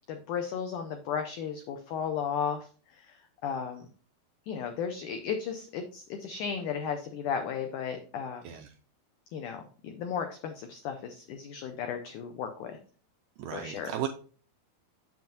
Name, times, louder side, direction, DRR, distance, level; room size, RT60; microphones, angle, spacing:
voice 1, 0.1-2.7 2.9-3.1 3.4-3.9 4.5-8.4 9.3-12.8 13.5-13.9, left 7 dB, 90° left, 6 dB, 1.7 m, -34 dB
voice 2, 13.4-14.1, right 11 dB, 85° right, 5 dB, 1.9 m, -35 dB
7.5 x 7.4 x 2.7 m, 0.41 s
omnidirectional pair, 4.4 m